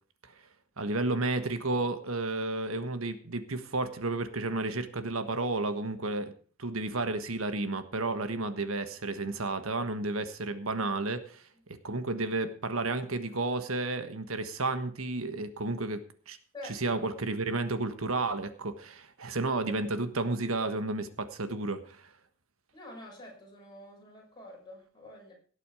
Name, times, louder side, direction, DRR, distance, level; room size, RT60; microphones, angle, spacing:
voice 1, 0.8-6.3 6.6-11.5 11.8-16.4 16.7-22.1, right 2 dB, 90° right, 10 dB, 1.5 m, -32 dB
voice 2, 16.5-17.0 22.7-25.3, left 1 dB, 20° left, -2 dB, 6.4 m, -47 dB
17.5 x 8.3 x 4.9 m, 0.43 s
head